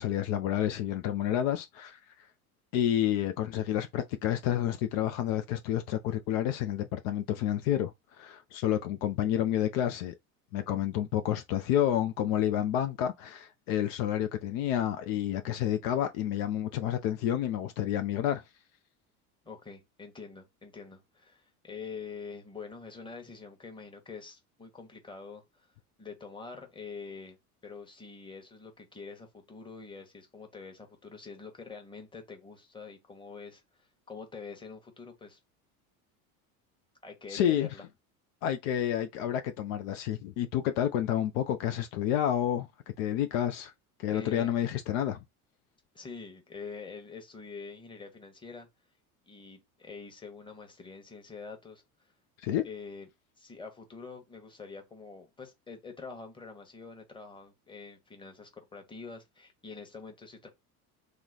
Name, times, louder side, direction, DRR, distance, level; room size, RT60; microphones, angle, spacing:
voice 1, 0.0-2.0 2.7-10.1 10.5-18.4 37.3-37.7 38.4-42.7 43.0-43.7 44.0-45.2 52.4-52.6, left 11 dB, 65° left, 0.5 m, -29 dB
voice 2, 19.4-25.7 26.0-27.4 27.6-35.4 37.0-37.9 44.1-44.6 45.9-48.7 49.3-51.8 52.6-53.1 53.4-60.5, left 5 dB, 10° left, 1.0 m, -45 dB
3.0 x 2.1 x 3.8 m
hypercardioid pair, 85°, 44 cm